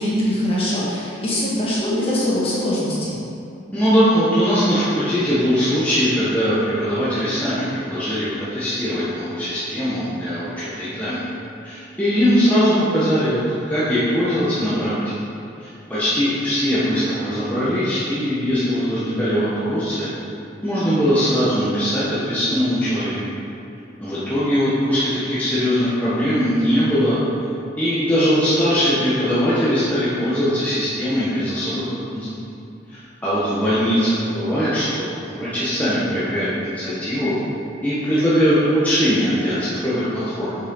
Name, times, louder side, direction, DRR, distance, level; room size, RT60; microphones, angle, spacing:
voice 1, 0.0-3.1, left 1 dB, 30° left, -8 dB, 1.6 m, -22 dB
voice 2, 3.7-11.2 11.6-13.4 13.7-14.9 15.6-20.1 20.6-23.2 24.0-27.2 27.8-32.3 32.9-37.3 37.8-40.6, equal, 10° left, -12 dB, 1.1 m, -21 dB
6.4 x 6.2 x 3.9 m, 2.6 s
head